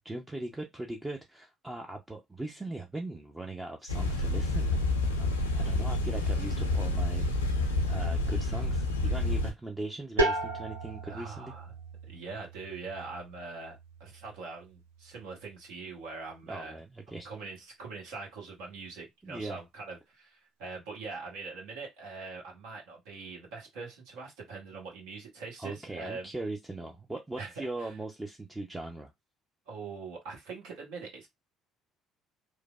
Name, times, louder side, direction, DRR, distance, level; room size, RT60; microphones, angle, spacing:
voice 1, 0.0-4.9 5.2-11.5 16.5-17.3 19.2-19.6 25.6-29.1, right 2 dB, 15° right, 0.5 m, -40 dB
sound 1, 3.9-9.5, left 2 dB, 85° left, 0.4 m, -29 dB
sound 2, 10.2-15.7, right 1 dB, 85° right, 0.5 m, -35 dB
voice 2, 11.1-11.7 12.1-16.8 17.1-26.3 27.4-27.9 29.7-31.3, right 4 dB, 70° right, 1.0 m, -43 dB
3.2 x 2.0 x 2.2 m
figure-of-eight pair, 55°, 0 cm